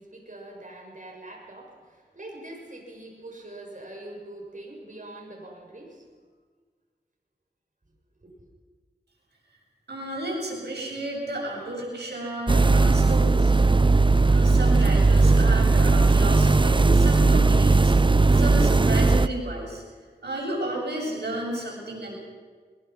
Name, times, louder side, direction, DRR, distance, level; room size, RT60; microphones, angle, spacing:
voice 1, 0.0-6.1 8.2-8.3, right 1 dB, 50° right, 0 dB, 6.8 m, -43 dB
voice 2, 9.9-13.5 14.3-17.9 18.3-19.8 20.2-22.1, right 1 dB, 90° right, -3 dB, 7.0 m, -32 dB
sound 1, 12.5-19.3, right 3 dB, 30° right, 0.6 m, -18 dB
22.5 x 21.5 x 6.0 m, 1.5 s
cardioid pair, 40°, 17 cm